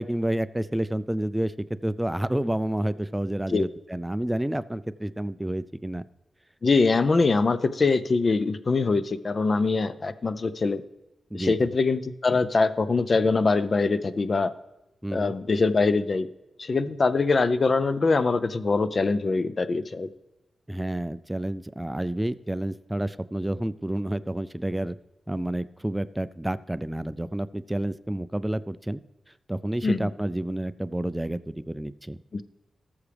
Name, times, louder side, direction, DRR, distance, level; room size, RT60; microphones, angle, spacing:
voice 1, 0.0-1.5 1.8-6.0 11.3-11.7 15.0-15.3 20.7-25.0 25.3-29.0 29.5-32.2, right 1 dB, 10° right, 15 dB, 0.4 m, -29 dB
voice 2, 6.6-10.8 11.3-14.5 15.1-16.3 16.6-20.1 29.8-30.1 32.3-32.4, left 3 dB, 45° left, 14 dB, 0.5 m, -23 dB
18.0 x 7.2 x 3.4 m, 0.99 s
wide cardioid pair, 100°, 0 cm